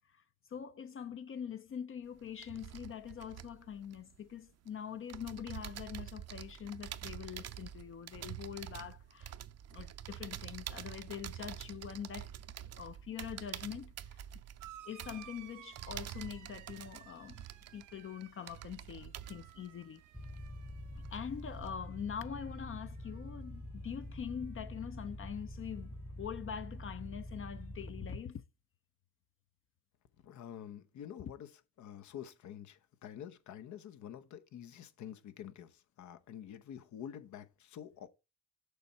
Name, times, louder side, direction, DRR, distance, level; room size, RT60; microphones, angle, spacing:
voice 1, 0.0-9.3 9.7-12.3 12.7-14.2 14.8-17.5 17.7-20.0 21.1-28.4, left 8 dB, 45° left, 0.6 m, -44 dB
sound 1, 2.1-4.7 5.1-20.8 21.0-21.7, right 11 dB, 55° right, 0.6 m, -47 dB
sound 2, 14.6-23.6 23.9-24.7 25.8-25.9, right 12 dB, 85° right, 1.3 m, -58 dB
sound 3, 20.1-28.2, left 1 dB, 5° left, 0.8 m, -46 dB
voice 2, 30.2-31.5 31.8-38.1, left 9 dB, 70° left, 0.9 m, -48 dB
6.8 x 4.3 x 5.6 m
cardioid pair, 90°, 30 cm